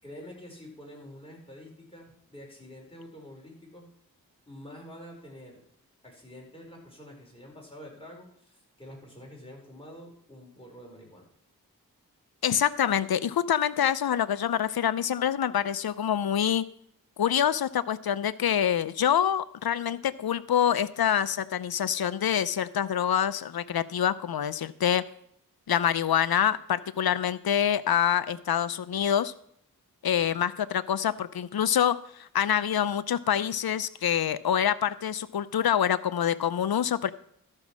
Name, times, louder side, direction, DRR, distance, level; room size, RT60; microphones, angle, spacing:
voice 1, 0.0-3.9 4.5-5.6 6.0-11.3, equal, 15° left, -1 dB, 4.7 m, -47 dB
voice 2, 12.4-16.6 17.2-25.0 25.7-29.3 30.0-37.1, left 9 dB, 70° left, 16 dB, 0.6 m, -26 dB
12.5 x 5.3 x 6.2 m, 0.70 s
cardioid pair, 40°, 38 cm